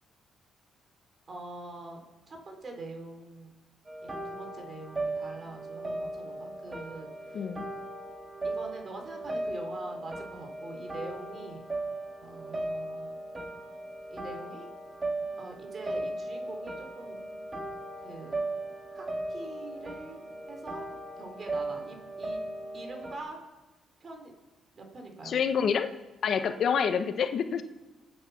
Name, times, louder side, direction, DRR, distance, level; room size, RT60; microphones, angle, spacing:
voice 1, 1.3-3.5 4.0-7.5 8.4-11.7 12.2-13.1 14.1-14.7 15.4-17.2 18.0-18.4 18.9-22.4 22.7-23.4 24.0-24.3 24.8-25.4, right 2 dB, 40° right, 3 dB, 4.2 m, -44 dB
sound 1, 3.9-23.2, right 2 dB, 25° right, 2.5 m, -37 dB
voice 2, 7.3-7.6 25.2-25.9 26.2-27.6, left 7 dB, 60° left, 9 dB, 1.1 m, -27 dB
26.0 x 8.8 x 6.0 m, 1.1 s
cardioid pair, 90°, 0 cm